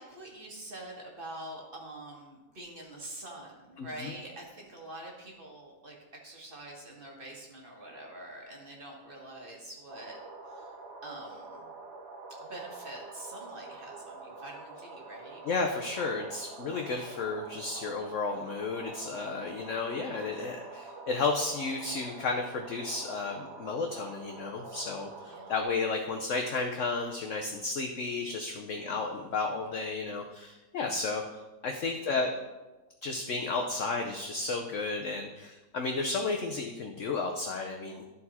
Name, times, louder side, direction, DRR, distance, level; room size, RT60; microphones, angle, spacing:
voice 1, 0.0-6.0 6.2-10.2 10.4-10.7 11.0-11.7 12.4-15.4 25.2-25.5 28.7-29.3 32.0-32.2, right 1 dB, 35° right, -1 dB, 1.7 m, -45 dB
voice 2, 3.8-4.1 15.4-31.2 31.6-32.3 33.0-38.0, left 3 dB, 60° left, 3 dB, 0.9 m, -33 dB
sound 1, 9.9-25.6, right 3 dB, 50° right, 1.0 m, -46 dB
12.5 x 4.5 x 4.2 m, 1.1 s
omnidirectional pair, 1.7 m